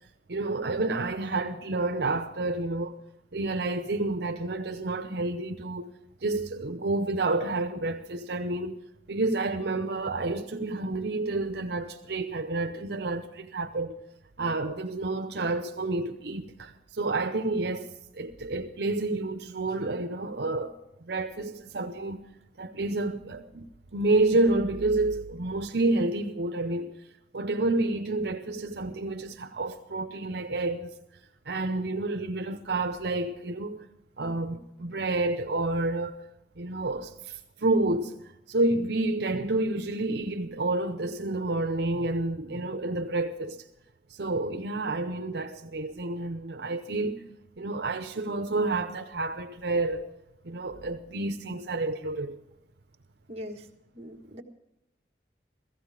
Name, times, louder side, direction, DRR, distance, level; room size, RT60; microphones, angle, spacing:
voice 1, 0.3-3.0 3.3-5.9 6.2-8.8 9.1-14.0 14.4-22.3 22.6-23.7 23.9-27.0 27.3-30.9 31.5-33.8 34.2-36.1 36.6-38.1 38.5-43.6 44.1-47.3 47.6-50.1 50.4-52.4, right 2 dB, 70° right, 0.8 m, -29 dB
voice 2, 53.3-53.7 53.9-54.4, equal, 35° right, 1.5 m, -41 dB
16.0 x 15.5 x 4.9 m
head